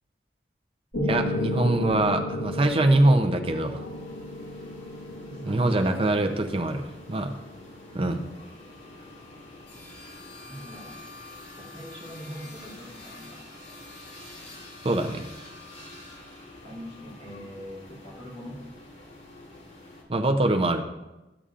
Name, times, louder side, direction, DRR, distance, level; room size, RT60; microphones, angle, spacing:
Piano, 0.9-9.0, left 1 dB, 60° left, 2.1 m, -34 dB
voice 1, 1.1-3.8 5.4-6.8 7.1-7.3 7.9-8.2 14.8-15.2 20.1-20.8, right 2 dB, 30° right, 6 dB, 0.6 m, -23 dB
sound 1, 3.5-20.0, left 2 dB, 85° left, 2.0 m, -47 dB
voice 2, 5.5-6.3 10.5-11.0 11.6-13.4 16.6-18.6, equal, 40° left, -6 dB, 2.9 m, -41 dB
12.5 x 6.8 x 2.5 m, 1.0 s
head